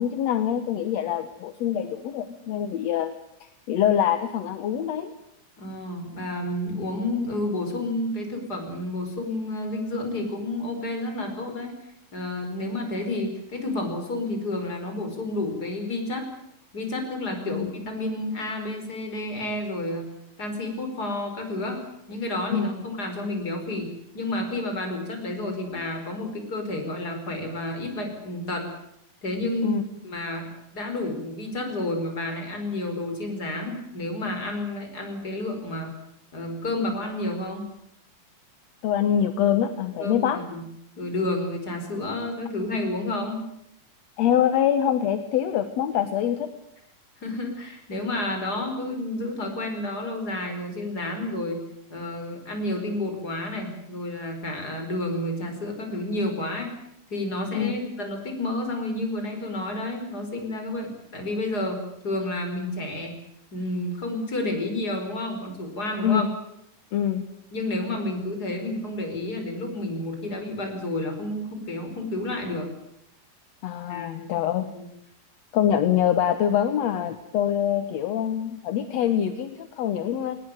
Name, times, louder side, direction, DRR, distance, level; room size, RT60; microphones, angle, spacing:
voice 1, 0.0-3.1 3.7-5.1 17.5-17.7 22.5-22.7 29.6-29.8 38.8-40.4 44.2-46.5 57.5-57.7 66.0-66.3 66.9-67.2 73.6-74.7 75.5-80.4, left 9 dB, 60° left, 10 dB, 1.9 m, -24 dB
voice 2, 5.6-11.7 12.1-16.3 16.7-20.1 20.4-21.8 22.1-28.7 29.2-35.9 36.3-37.6 40.0-40.6 41.0-43.4 47.2-51.6 51.9-56.7 57.1-63.2 63.5-66.2 67.5-72.7 73.9-74.3 74.7-74.9, left 1 dB, 25° left, 4 dB, 5.3 m, -30 dB
21.0 x 19.5 x 9.2 m, 0.77 s
omnidirectional pair, 4.1 m